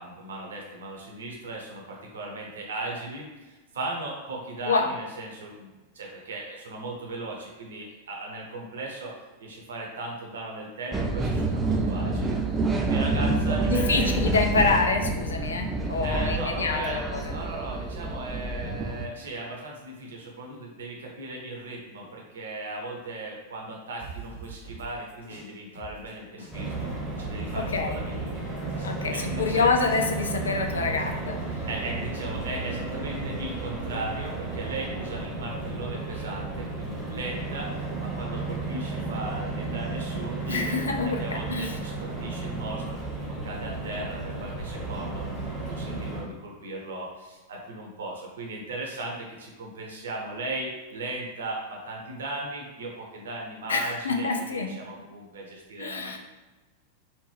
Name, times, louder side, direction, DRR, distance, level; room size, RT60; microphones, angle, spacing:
voice 1, 0.0-9.1 9.4-14.1 16.0-26.9 27.2-29.7 31.0-31.2 31.5-56.2, right 2 dB, 65° right, -1 dB, 0.9 m, -37 dB
sound 1, 10.9-19.1, right 3 dB, 15° right, 0.4 m, -27 dB
voice 2, 13.7-17.2 27.6-28.0 28.8-31.4 40.5-41.7 53.7-54.7 55.8-56.2, left 4 dB, 70° left, 4 dB, 0.4 m, -26 dB
sound 2, 24.0-26.1 26.4-30.9, right 5 dB, 85° left, 1.4 m, -43 dB
sound 3, 26.5-46.2, right 3 dB, 5° left, 1.2 m, -33 dB
4.3 x 2.5 x 3.3 m, 1.2 s
figure-of-eight pair, 90°, 0 cm